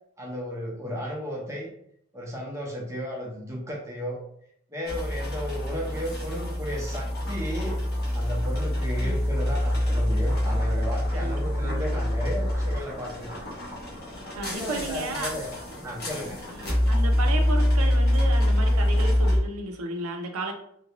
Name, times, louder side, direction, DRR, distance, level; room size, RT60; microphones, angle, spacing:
voice 1, 0.2-1.7 2.1-4.2 4.7-7.8 8.1-13.3 14.5-15.5 15.8-16.4, equal, 15° right, -2 dB, 0.8 m, -34 dB
sound 1, 4.8-19.4, left 1 dB, 50° left, 1.2 m, -25 dB
voice 2, 11.1-12.1 14.3-15.3 16.5-20.5, right 2 dB, 80° right, 4 dB, 0.5 m, -34 dB
3.2 x 2.6 x 2.9 m, 0.71 s
head